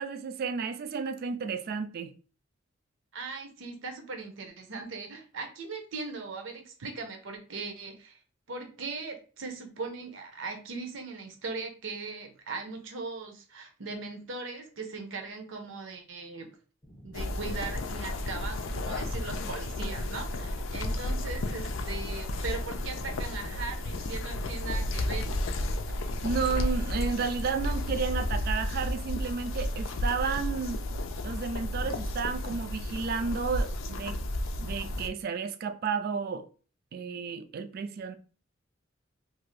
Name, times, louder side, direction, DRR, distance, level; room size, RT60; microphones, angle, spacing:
voice 1, 0.0-2.1 26.2-30.8 31.2-34.2 34.6-36.5 36.9-38.2, right 5 dB, 50° right, 0.3 m, -32 dB
voice 2, 3.1-8.2 8.5-16.5 17.0-25.3, right 4 dB, 80° right, 0.7 m, -39 dB
sound 1, 16.8-24.4, right 1 dB, 20° left, 0.6 m, -52 dB
sound 2, 17.1-35.1, left 1 dB, 90° left, 0.4 m, -32 dB
2.6 x 2.4 x 3.1 m
head